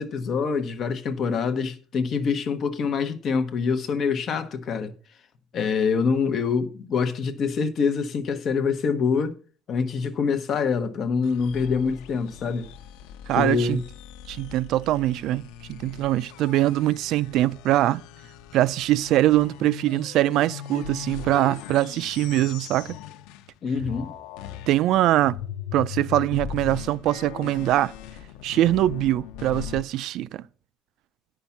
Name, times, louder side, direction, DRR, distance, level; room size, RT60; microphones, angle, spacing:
voice 1, 0.0-4.9 5.5-9.4 9.7-12.7 13.4-13.8 23.6-24.1, left 5 dB, 35° left, 1.0 m, -25 dB
sound 1, 11.2-23.5 23.8-29.8, left 10 dB, 80° left, 0.7 m, -39 dB
voice 2, 13.3-13.8 14.3-18.0 18.5-22.9 24.7-25.4 25.7-27.9 28.4-30.4, right 14 dB, 50° right, 0.4 m, -23 dB
9.7 x 5.8 x 7.1 m
cardioid pair, 170°, 0 cm